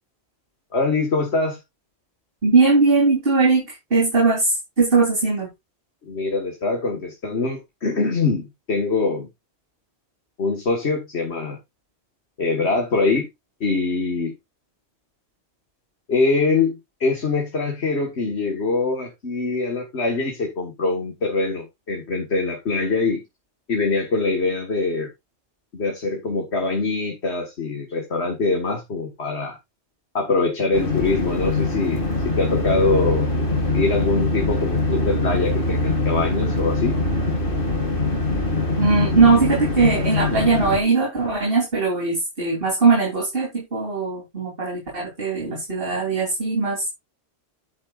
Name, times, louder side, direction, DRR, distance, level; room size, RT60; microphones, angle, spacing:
voice 1, 0.7-1.6 6.0-9.3 10.4-11.6 12.4-13.3 13.6-14.3 16.1-23.2 23.7-25.1 25.7-29.6 30.1-33.3 33.7-37.0, left 3 dB, 75° left, 2.1 m, -23 dB
voice 2, 2.4-5.5 38.8-46.9, right 4 dB, 55° right, 4.0 m, -20 dB
sound 1, 30.7-40.8, left 2 dB, 50° left, 2.5 m, -23 dB
10.5 x 8.7 x 2.5 m
omnidirectional pair, 1.1 m